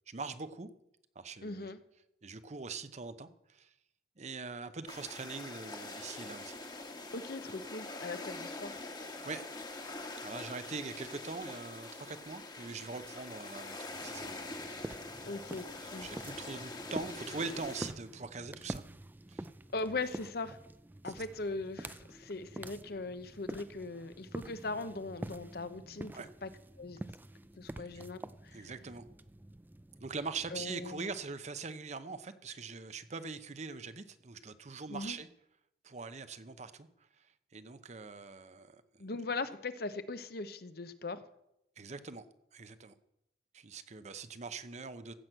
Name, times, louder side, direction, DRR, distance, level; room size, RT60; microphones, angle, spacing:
voice 1, 0.1-0.7 1.1-1.7 2.2-3.7 4.2-6.6 9.2-9.6 10.2-14.8 15.2-15.4 15.8-18.8 19.3-19.5 21.0-21.1 26.1-26.3 27.8-28.0 28.5-29.1 30.0-35.3 35.8-36.9 37.2-37.3 37.5-39.1 41.8-42.2 42.5-42.9 43.5-45.1, right 4 dB, 40° right, 12 dB, 0.7 m, -43 dB
voice 2, 1.4-1.8 7.1-8.8 15.2-15.7 15.9-16.1 19.7-20.6 21.0-26.1 26.4-26.5 26.8-27.0 27.6-28.2 28.4-28.7 30.5-31.1 34.9-35.2 39.0-41.2, left 3 dB, 60° left, 12 dB, 0.8 m, -39 dB
sound 1, 4.9-17.9, left 2 dB, 25° left, 1.4 m, -44 dB
sound 2, 13.9-31.5, right 1 dB, 10° right, 0.4 m, -47 dB
15.0 x 6.1 x 7.9 m, 0.82 s
head